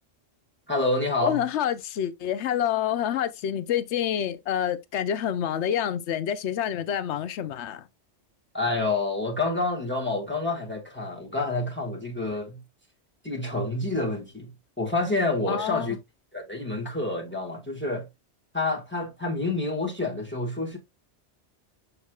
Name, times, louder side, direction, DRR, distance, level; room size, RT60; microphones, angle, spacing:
voice 1, 0.7-1.4 8.5-12.6 13.2-14.5 14.8-16.0 16.3-18.1 18.5-20.8, left 2 dB, 10° left, 1.6 m, -28 dB
voice 2, 1.2-7.9 15.5-15.9, left 10 dB, 80° left, 1.0 m, -27 dB
6.8 x 6.5 x 2.3 m
omnidirectional pair, 1.2 m